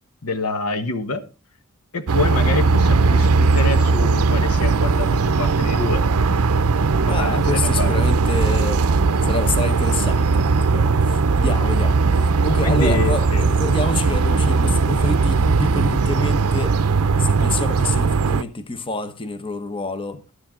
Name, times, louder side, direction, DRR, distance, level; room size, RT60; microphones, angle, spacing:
voice 1, 0.2-1.2 1.9-6.0 7.1-8.1 12.6-13.5, left 3 dB, 80° left, 1.3 m, -26 dB
sound 1, 2.1-18.4, right 4 dB, 80° right, 0.6 m, -18 dB
voice 2, 7.1-8.8 9.2-16.7 17.2-20.2, left 2 dB, 25° left, 0.9 m, -28 dB
12.5 x 10.5 x 3.7 m
head